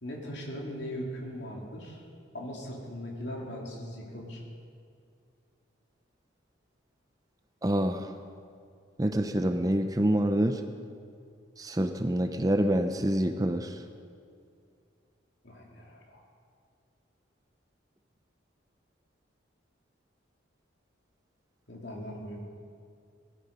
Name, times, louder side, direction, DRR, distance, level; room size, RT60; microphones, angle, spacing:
voice 1, 0.0-2.0 2.3-4.4 15.4-16.2 21.7-22.4, equal, 65° left, -1 dB, 3.1 m, -39 dB
voice 2, 7.6-8.1 9.0-10.6 11.6-13.7, right 1 dB, 20° right, 7 dB, 0.6 m, -26 dB
19.0 x 13.5 x 5.4 m, 2.3 s
head